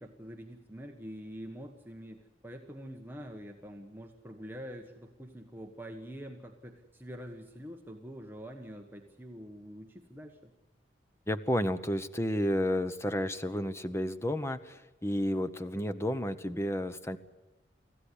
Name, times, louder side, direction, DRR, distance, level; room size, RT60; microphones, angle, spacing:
voice 1, 0.0-10.5, equal, 10° right, 2 dB, 1.3 m, -45 dB
voice 2, 11.3-17.2, equal, 15° left, 11 dB, 0.9 m, -31 dB
25.0 x 15.0 x 9.9 m, 1.1 s
head